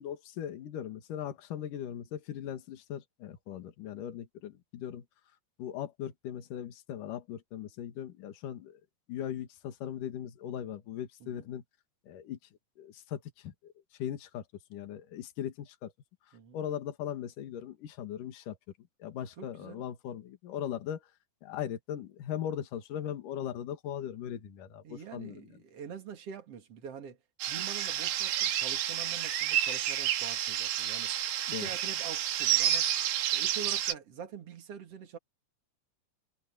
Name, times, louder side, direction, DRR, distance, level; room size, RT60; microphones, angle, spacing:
voice 1, 0.0-5.0 5.6-8.8 9.1-11.6 12.1-12.4 12.8-13.7 14.0-14.4 14.7-15.9 16.5-18.6 19.0-21.0 21.4-25.5 31.5-31.7, left 10 dB, 55° left, 2.7 m, -39 dB
voice 2, 19.4-19.8 24.8-27.2 27.5-31.1 31.5-32.9 33.3-35.2, right 7 dB, 40° right, 2.3 m, -45 dB
sound 1, 27.4-33.9, right 11 dB, 70° right, 3.5 m, -30 dB
omnidirectional pair, 5.8 m